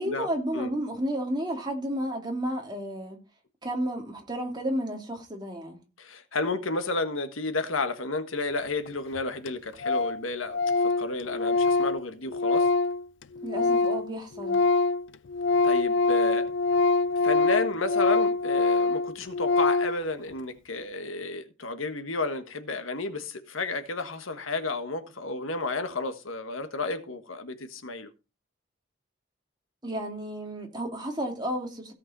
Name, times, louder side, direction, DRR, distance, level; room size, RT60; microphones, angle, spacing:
voice 1, 0.0-3.2 3.6-5.8 13.4-14.6 29.8-31.9, equal, 20° right, 2.6 m, -32 dB
voice 2, 6.0-12.7 15.6-16.5 17.2-28.1, left 3 dB, 90° left, 1.5 m, -32 dB
Organ, 8.9-9.0 9.2-9.3 9.5-9.6 9.8-10.2 10.5-14.1 14.3-20.0, left 3 dB, 65° left, 0.5 m, -24 dB
16.5 x 6.0 x 4.1 m
head